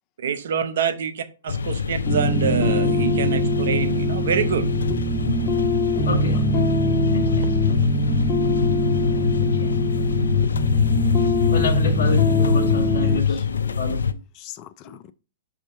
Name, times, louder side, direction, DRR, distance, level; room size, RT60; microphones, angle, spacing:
voice 1, 0.2-4.7, right 7 dB, 70° right, 0.9 m, -26 dB
sound 1, 1.5-14.1, left 6 dB, 85° left, 0.5 m, -24 dB
sound 2, 2.1-13.2, equal, 15° left, 1.9 m, -23 dB
voice 2, 6.0-6.5 6.8-7.5 9.4-9.7 11.5-13.4 13.8-14.0, left 4 dB, 70° left, 1.1 m, -29 dB
voice 3, 13.0-14.0 14.4-15.1, left 12 dB, 35° left, 0.5 m, -42 dB
5.3 x 5.0 x 3.9 m
hypercardioid pair, 125°, 0 cm